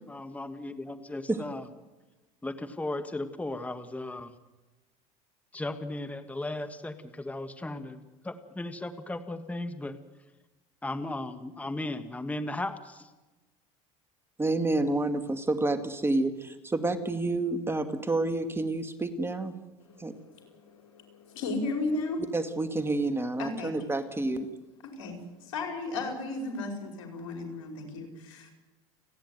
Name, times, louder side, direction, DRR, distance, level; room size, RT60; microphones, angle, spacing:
voice 1, 0.1-1.6 2.4-4.3 5.5-10.0 10.8-13.1, left 2 dB, 10° left, 9 dB, 1.6 m, -36 dB
voice 2, 14.4-19.5 20.0-20.2 22.3-24.5, right 2 dB, 15° right, 9 dB, 2.2 m, -29 dB
voice 3, 19.8-22.2 23.4-23.7 24.8-28.5, left 3 dB, 90° left, 4 dB, 5.2 m, -35 dB
30.0 x 10.0 x 9.4 m, 1.1 s
supercardioid pair, 95°, 17 cm